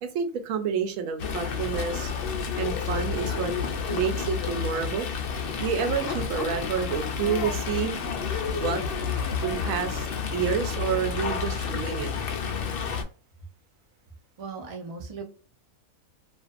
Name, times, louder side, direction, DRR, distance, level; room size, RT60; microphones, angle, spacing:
voice 1, 0.0-2.2 2.6-3.5 3.9-5.1 5.6-8.0 8.5-8.8 9.4-12.1, right 7 dB, 75° right, 1.0 m, -29 dB
Fowl, 1.2-13.0, left 6 dB, 75° left, 0.5 m, -30 dB
voice 2, 14.4-15.2, right 4 dB, 60° right, 0.3 m, -37 dB
2.5 x 2.3 x 2.3 m
omnidirectional pair, 1.5 m